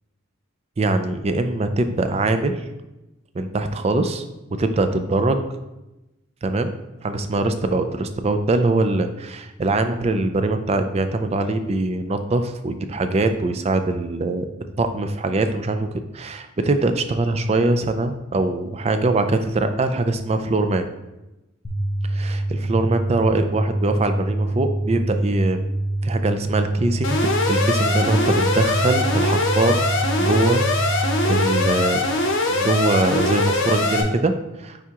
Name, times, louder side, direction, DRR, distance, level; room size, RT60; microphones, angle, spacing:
voice 1, 0.8-2.6 3.3-4.2 4.6-5.4 6.4-6.7 7.0-14.5 14.8-15.9 16.1-20.9 22.0-25.6 26.0-29.8 30.2-32.1 32.5-34.8, right 2 dB, 30° right, 8 dB, 0.4 m, -22 dB
sound 1, 21.6-31.7, right 1 dB, 25° left, 0.6 m, -25 dB
Alarm, 27.0-34.0, left 2 dB, 65° left, 0.8 m, -22 dB
9.0 x 3.6 x 2.9 m, 0.98 s
head